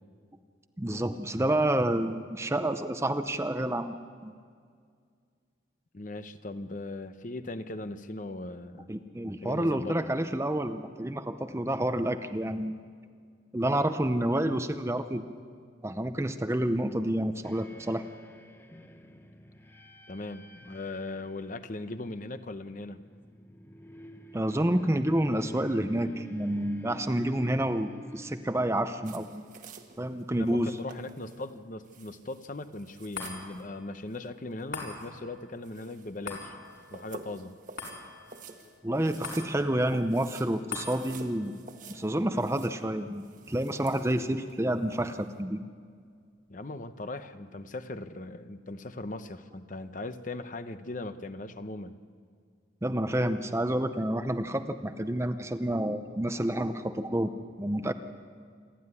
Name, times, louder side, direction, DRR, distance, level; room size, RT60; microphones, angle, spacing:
voice 1, 0.8-4.0 4.2-4.3 8.9-12.8 13.5-15.2 15.8-18.0 24.3-29.5 30.0-30.8 38.8-41.6 41.9-45.6 52.8-57.3 57.6-57.9, right 1 dB, 15° right, 9 dB, 0.6 m, -29 dB
voice 2, 5.9-8.9 9.2-10.1 20.1-23.0 30.3-36.6 36.9-37.5 46.5-52.0, left 2 dB, 40° left, 10 dB, 0.8 m, -39 dB
sound 1, 17.4-29.5, equal, 10° left, 0.9 m, -48 dB
sound 2, 29.0-45.4, right 4 dB, 40° right, 1.3 m, -51 dB
sound 3, 33.1-45.7 46.2-46.3, left 4 dB, 60° left, 4.6 m, -46 dB
28.0 x 11.5 x 9.7 m, 2.1 s
head